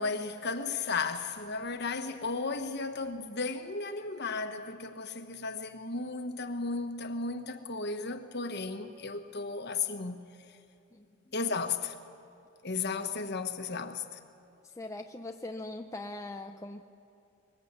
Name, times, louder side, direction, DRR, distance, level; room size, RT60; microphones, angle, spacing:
voice 1, 0.0-10.2 11.3-11.9 12.6-14.2, left 4 dB, 50° left, 1.3 m, -34 dB
voice 2, 10.9-11.3 13.7-13.8 14.6-16.8, left 2 dB, 15° left, 0.6 m, -41 dB
24.0 x 21.5 x 8.2 m
head